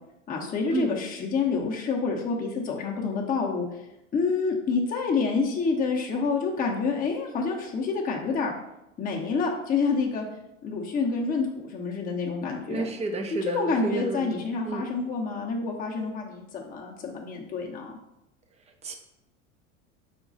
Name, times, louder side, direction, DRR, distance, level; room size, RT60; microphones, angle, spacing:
voice 1, 0.3-3.7 4.1-8.5 9.0-10.2 10.6-12.9 13.5-17.9, left 4 dB, 20° left, -1 dB, 0.7 m, -28 dB
voice 2, 12.7-14.9 18.8-18.9, right 3 dB, 15° right, 4 dB, 0.5 m, -31 dB
5.1 x 2.3 x 3.9 m, 0.88 s
hypercardioid pair, 85°, 40 cm